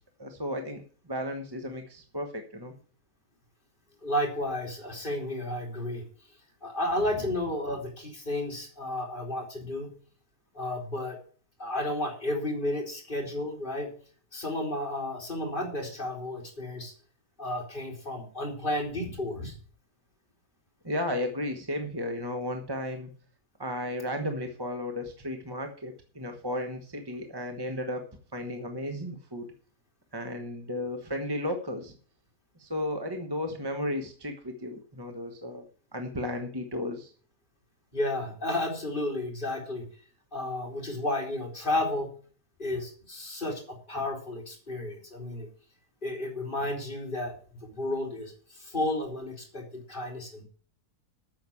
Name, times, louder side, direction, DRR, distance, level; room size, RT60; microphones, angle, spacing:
voice 1, 0.2-2.7 20.8-23.1 23.6-29.5 30.1-31.9 32.6-35.6 35.9-37.1, left 1 dB, 15° right, 5 dB, 1.1 m, -34 dB
voice 2, 4.0-6.0 6.6-9.9 10.5-11.2 11.6-13.9 14.3-16.9 17.4-19.6 37.9-39.8 40.3-42.1 42.6-45.5 46.0-47.3 47.6-50.4, left 1 dB, 30° left, 1 dB, 3.3 m, -32 dB
9.0 x 7.1 x 8.4 m, 0.43 s
omnidirectional pair, 1.7 m